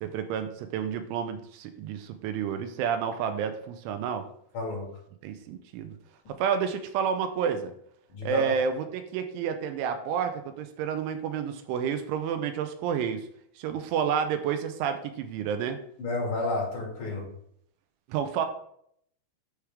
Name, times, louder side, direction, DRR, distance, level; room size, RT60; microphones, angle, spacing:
voice 1, 0.0-4.3 5.2-6.0 6.3-7.7 8.2-13.3 13.6-15.8 18.1-18.5, right 7 dB, 85° right, 7 dB, 2.8 m, -30 dB
voice 2, 4.5-4.8 8.1-8.5 16.0-17.2, left 2 dB, 50° left, -3 dB, 3.1 m, -30 dB
9.8 x 4.8 x 3.5 m, 0.69 s
omnidirectional pair, 6.0 m